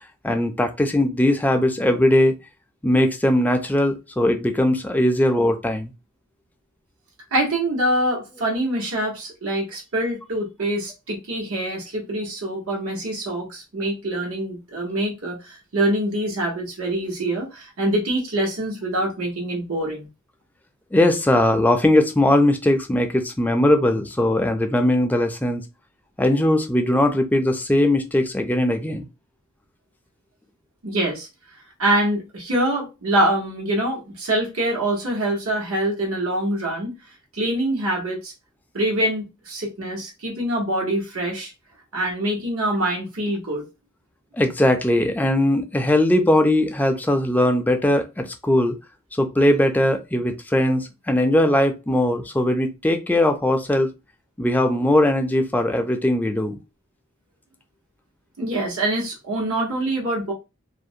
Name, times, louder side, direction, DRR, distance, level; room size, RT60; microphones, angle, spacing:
voice 1, 0.2-2.4 2.8-5.9 20.9-25.6 26.2-29.1 44.3-48.8 49.2-53.9 54.4-56.6, left 1 dB, 10° left, 0.3 m, -20 dB
voice 2, 7.3-20.1 30.8-31.3 31.8-36.9 37.3-38.3 38.7-41.5 41.9-43.6 58.4-60.3, right 1 dB, 85° right, 1.1 m, -24 dB
2.4 x 2.0 x 2.6 m
head